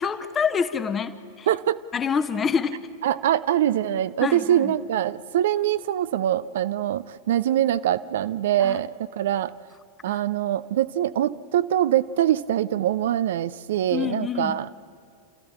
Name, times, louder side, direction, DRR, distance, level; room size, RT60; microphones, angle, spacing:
voice 1, 0.0-1.5 1.9-2.8 4.2-4.7 8.6-8.8 10.1-10.2 13.9-14.6, left 6 dB, 20° left, 11 dB, 1.2 m, -26 dB
voice 2, 1.5-1.8 3.0-9.5 10.0-14.8, right 11 dB, 60° right, 14 dB, 0.6 m, -23 dB
29.5 x 14.0 x 8.9 m, 2.4 s
figure-of-eight pair, 90°, 0 cm